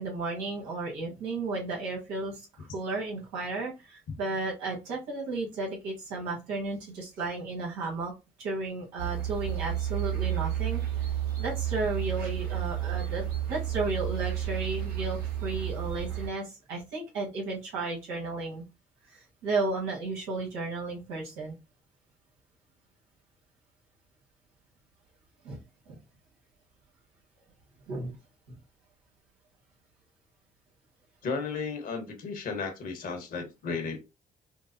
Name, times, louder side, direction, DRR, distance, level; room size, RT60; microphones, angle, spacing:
voice 1, 0.0-8.1 8.4-10.8 11.4-18.6 19.1-21.5 25.4-26.0 27.9-28.2 28.5-28.6, right 3 dB, 90° right, 1.5 m, -34 dB
sound 1, 9.0-16.3, right 11 dB, 70° right, 1.2 m, -31 dB
voice 2, 31.2-34.0, left 5 dB, 65° left, 1.2 m, -34 dB
4.5 x 2.0 x 2.7 m
supercardioid pair, 55°, 16 cm